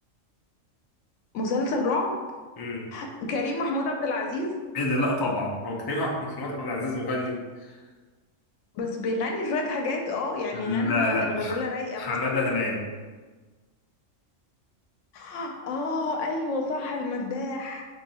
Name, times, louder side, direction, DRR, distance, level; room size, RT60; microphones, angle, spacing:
voice 1, 1.3-2.2 2.9-4.6 8.7-12.4 15.1-17.8, left 2 dB, 75° left, 2 dB, 0.9 m, -29 dB
voice 2, 2.6-2.9 4.7-7.7 10.5-11.5 12.0-12.8, left 2 dB, 30° left, -2 dB, 0.4 m, -28 dB
3.6 x 2.6 x 4.1 m, 1.3 s
omnidirectional pair, 1.3 m